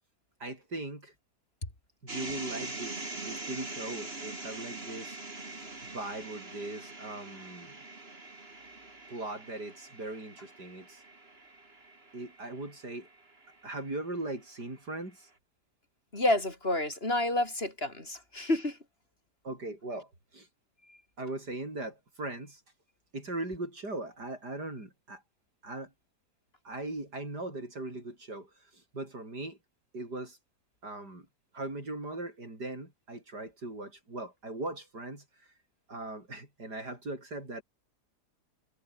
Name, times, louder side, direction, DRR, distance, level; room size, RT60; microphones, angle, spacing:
voice 1, 0.4-1.1 2.0-5.5 5.8-7.8 9.1-11.0 12.1-13.1 13.6-15.3 19.4-20.5 21.2-22.6 23.1-25.2 25.6-25.9 26.6-29.6 29.9-30.4 30.8-31.3 31.5-35.2 35.9-37.6, right 2 dB, 80° right, 8.2 m, -39 dB
sound 1, 2.1-14.2, right 2 dB, 35° right, 3.6 m, -43 dB
voice 2, 16.1-18.8, left 1 dB, 35° left, 4.6 m, -29 dB
omnidirectional pair, 1.7 m